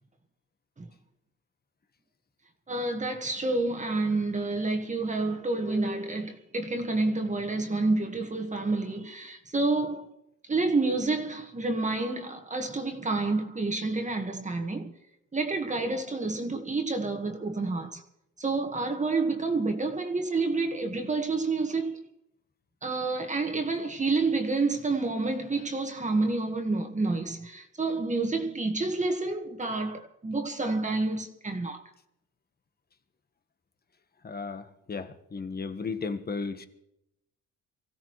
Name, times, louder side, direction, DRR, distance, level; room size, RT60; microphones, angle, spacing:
voice 1, 2.7-10.1 10.5-14.9 15.3-18.0 18.4-22.0 22.8-31.8, right 3 dB, 25° right, 1.6 m, -29 dB
voice 2, 34.2-36.7, left 4 dB, 30° left, 1.3 m, -35 dB
24.5 x 16.0 x 3.2 m
cardioid pair, 90°, 30 cm